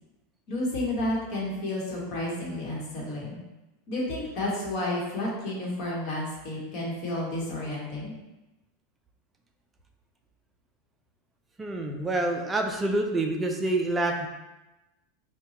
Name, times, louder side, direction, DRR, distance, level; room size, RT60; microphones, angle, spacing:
voice 1, 0.5-3.4 3.9-8.1, left 1 dB, 45° left, -4 dB, 1.2 m, -31 dB
voice 2, 11.6-14.3, right 2 dB, 10° right, 3 dB, 0.4 m, -27 dB
4.5 x 2.2 x 2.8 m, 1.0 s
supercardioid pair, 145°, 0 cm